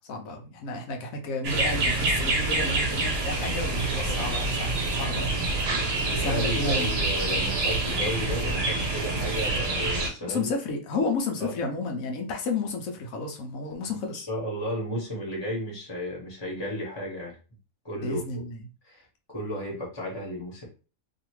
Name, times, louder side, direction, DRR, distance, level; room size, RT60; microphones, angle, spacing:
voice 1, 0.1-4.7 5.0-5.3 5.7-7.0 10.2-14.3 18.0-18.6, left 3 dB, 70° left, 3 dB, 1.0 m, -32 dB
sound 1, 1.4-10.1, right 2 dB, 50° right, 0.9 m, -27 dB
voice 2, 6.0-10.4 11.4-11.5 13.8-17.4 17.8-18.4 18.8-20.7, equal, 20° left, -3 dB, 1.0 m, -34 dB
2.7 x 2.5 x 3.0 m, 0.35 s
omnidirectional pair, 1.6 m